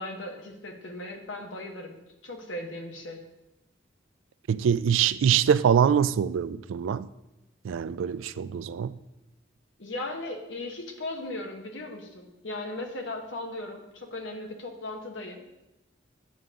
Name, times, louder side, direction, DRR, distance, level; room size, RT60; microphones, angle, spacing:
voice 1, 0.0-3.2 9.8-15.4, left 2 dB, 75° left, 1.2 m, -37 dB
voice 2, 4.5-7.1 7.6-8.9, right 8 dB, 85° right, 0.3 m, -24 dB
9.1 x 6.7 x 3.7 m
head